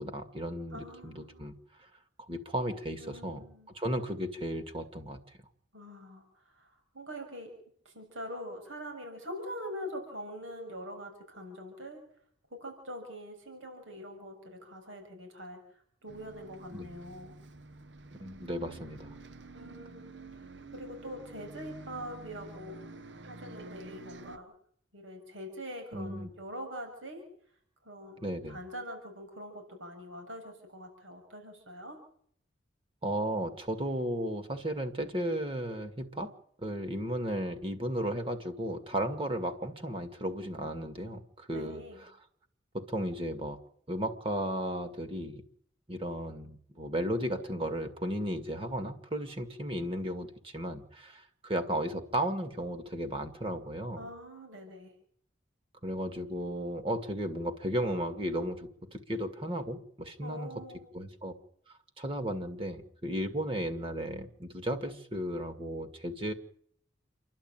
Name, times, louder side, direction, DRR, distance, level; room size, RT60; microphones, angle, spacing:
voice 1, 0.0-1.9 2.2-3.4 3.7-5.2 16.7-16.9 18.2-19.2 25.9-26.3 28.2-28.6 33.0-36.3 36.6-42.1 42.7-43.6 43.9-45.4 45.9-54.0 55.8-60.5 60.9-61.3 61.7-66.3, right 1 dB, 30° right, 7 dB, 2.0 m, -35 dB
voice 2, 0.7-1.5 3.0-3.7 5.7-7.5 7.8-12.0 12.5-17.4 19.5-22.8 23.3-24.5 24.9-27.2 27.8-32.0 41.5-42.1 54.0-54.9 60.2-60.8, equal, 85° right, 4 dB, 6.8 m, -44 dB
Bus, 16.1-24.4, right 2 dB, 65° right, 1.3 m, -49 dB
29.5 x 12.0 x 9.0 m, 0.64 s
head